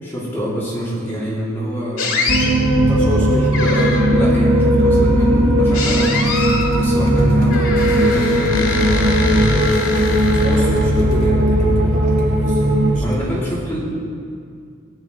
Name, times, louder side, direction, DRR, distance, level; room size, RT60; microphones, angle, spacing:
voice 1, 0.0-2.1 2.5-6.1 6.7-9.6 13.0-13.8, equal, 10° left, -8 dB, 2.8 m, -26 dB
sound 1, 2.0-2.5 3.5-4.3 5.7-6.7 7.5-10.9, left 4 dB, 80° left, 2.0 m, -24 dB
sound 2, 2.3-13.0, equal, 70° right, 1.4 m, -16 dB
voice 2, 2.9-3.8 9.4-13.5, equal, 35° right, -4 dB, 2.8 m, -29 dB
sound 3, 5.7-11.3, equal, 45° left, 2.9 m, -31 dB
18.5 x 10.0 x 3.9 m, 2.3 s
head